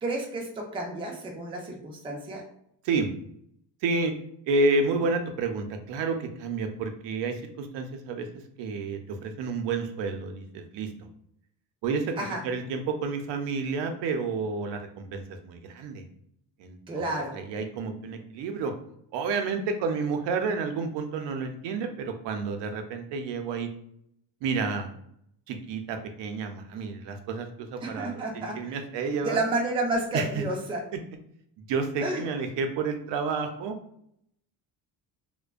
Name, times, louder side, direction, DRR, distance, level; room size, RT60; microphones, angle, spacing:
voice 1, 0.0-2.4 12.2-12.4 16.9-17.4 27.8-28.6 29.2-30.8 32.0-32.2, right 2 dB, 15° right, 0 dB, 0.4 m, -30 dB
voice 2, 3.8-4.2 4.5-8.3 8.6-10.9 11.8-12.2 12.4-16.0 16.6-18.7 19.1-23.7 24.4-24.9 25.5-29.4 30.1-30.4 31.6-33.7, right 4 dB, 85° right, 5 dB, 0.5 m, -30 dB
2.5 x 2.1 x 2.3 m, 0.70 s
cardioid pair, 130°, 42 cm